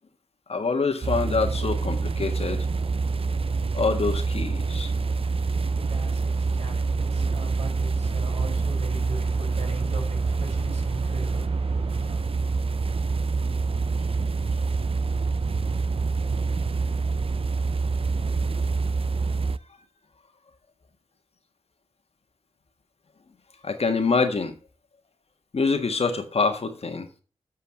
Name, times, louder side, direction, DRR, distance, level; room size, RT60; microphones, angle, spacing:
voice 1, 0.5-2.7 3.7-4.9 23.6-24.5 25.5-27.1, left 4 dB, 60° left, 1.6 m, -25 dB
sound 1, 1.0-19.6, right 4 dB, 55° right, 0.5 m, -26 dB
voice 2, 5.0-12.2, right 2 dB, 75° right, 5.1 m, -39 dB
7.4 x 5.6 x 6.3 m
cardioid pair, 55°, 12 cm